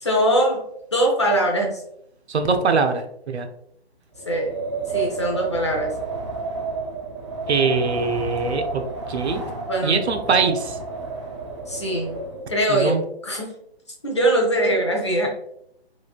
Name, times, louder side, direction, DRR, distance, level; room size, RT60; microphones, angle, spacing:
voice 1, 0.0-0.6 0.9-1.8 4.3-4.5 4.9-5.9 9.7-10.0 11.7-12.1 12.5-13.0 13.2-13.5 14.0-15.3, right 1 dB, 30° left, -1 dB, 0.4 m, -21 dB
voice 2, 2.3-3.5 7.5-8.8 9.1-9.4 9.8-10.8 12.7-13.0, right 4 dB, 85° right, 6 dB, 0.6 m, -22 dB
Wind, 4.1-12.6, right 4 dB, 30° right, 0.4 m, -31 dB
3.1 x 2.5 x 2.4 m, 0.74 s
figure-of-eight pair, 155°, 32 cm